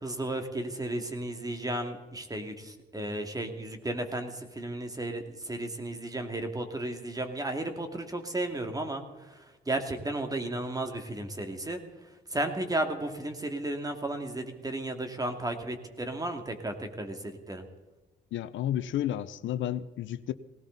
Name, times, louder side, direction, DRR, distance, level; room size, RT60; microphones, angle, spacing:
voice 1, 0.0-9.0 9.7-11.8 12.3-17.6, right 1 dB, 20° right, 2.4 m, -34 dB
voice 2, 18.3-20.3, left 11 dB, 75° left, 0.7 m, -31 dB
19.0 x 17.5 x 4.0 m
cardioid pair, 90°, 20 cm